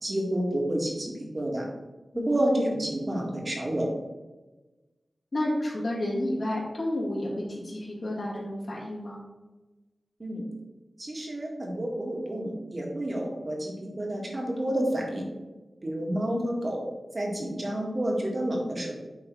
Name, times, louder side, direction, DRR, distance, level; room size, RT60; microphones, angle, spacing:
voice 1, 0.0-1.7 2.3-3.9 10.2-10.5 11.0-15.2 15.8-16.8 17.1-19.0, right 1 dB, 40° right, -1 dB, 2.0 m, -29 dB
voice 2, 5.3-9.2, left 1 dB, 60° left, -5 dB, 2.5 m, -31 dB
9.7 x 3.5 x 4.7 m, 1.1 s
wide cardioid pair, 80°, 0 cm